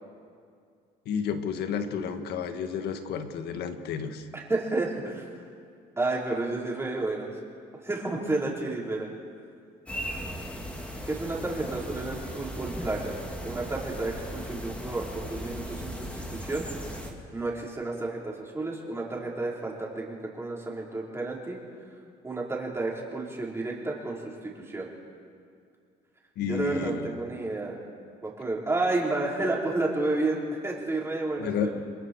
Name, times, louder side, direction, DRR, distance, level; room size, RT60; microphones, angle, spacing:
voice 1, 1.1-4.2 26.4-27.1 31.4-31.7, left 7 dB, 75° left, 7 dB, 1.8 m, -31 dB
voice 2, 4.3-5.2 6.0-7.3 7.8-9.1 11.0-13.2 13.4-16.7 17.3-21.6 22.2-24.2 24.4-24.9 26.5-27.8 28.2-31.8, right 2 dB, 15° right, -3 dB, 4.9 m, -31 dB
sound 1, 9.9-17.1, equal, 5° left, 2.8 m, -37 dB
29.5 x 21.5 x 4.8 m, 2.3 s
cardioid pair, 110°, 17 cm